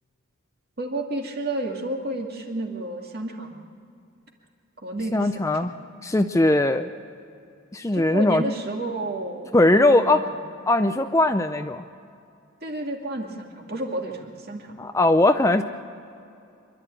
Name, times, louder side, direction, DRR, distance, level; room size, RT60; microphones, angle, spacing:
voice 1, 0.8-3.6 4.8-5.7 7.9-10.3 12.6-14.8, right 2 dB, 45° right, 1 dB, 2.3 m, -31 dB
voice 2, 5.1-5.7 6.0-6.9 7.7-8.4 9.5-10.3 10.7-11.8 14.8-15.6, left 2 dB, 15° left, 8 dB, 0.5 m, -20 dB
26.0 x 12.0 x 9.0 m, 2.6 s
head